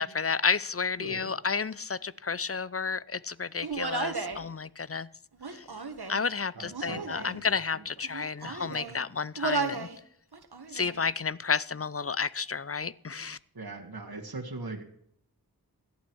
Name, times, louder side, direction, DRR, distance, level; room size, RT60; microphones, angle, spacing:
voice 1, 0.0-5.1 5.5-5.6 6.1-9.9 10.7-13.4, left 5 dB, 40° left, 20 dB, 0.6 m, -31 dB
voice 2, 1.0-1.4 6.6-7.9 8.4-8.9 13.5-14.9, right 3 dB, 70° right, 2 dB, 1.9 m, -41 dB
Human voice, 3.6-4.4 5.3-6.3 6.7-7.4 8.0-9.0 9.4-10.0 10.3-11.0, right 3 dB, 85° right, 1.5 m, -34 dB
17.0 x 11.5 x 4.6 m, 0.69 s
wide cardioid pair, 45°, 38 cm